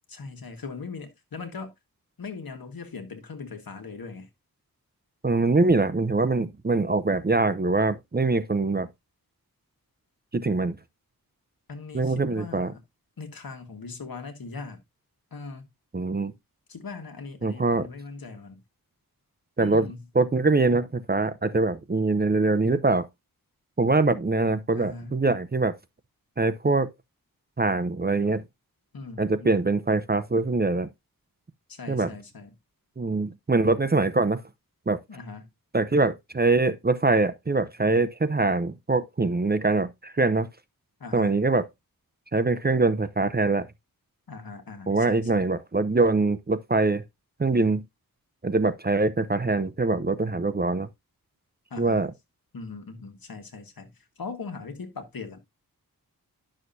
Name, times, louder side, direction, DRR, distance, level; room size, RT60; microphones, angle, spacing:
voice 1, 0.1-1.7 2.2-4.3 11.7-12.8 13.2-14.8 15.3-15.7 16.7-18.6 19.6-20.1 24.7-25.2 28.9-29.7 31.7-32.6 35.1-35.5 41.0-41.4 44.3-45.5 51.7-52.1 52.5-55.4, left 4 dB, 70° left, 1.7 m, -40 dB
voice 2, 5.2-8.9 10.3-10.8 11.9-12.7 15.9-16.3 17.4-17.9 19.6-19.9 20.2-23.1 23.8-25.7 26.4-26.9 27.6-28.4 29.2-30.9 31.9-32.1 33.0-34.4 34.9-35.0 35.7-40.5 41.1-41.6 42.3-43.7 44.9-47.0 47.4-47.8 48.4-50.9 51.8-52.1, right 3 dB, 25° right, 0.7 m, -23 dB
11.0 x 6.5 x 2.7 m
wide cardioid pair, 75°, 37 cm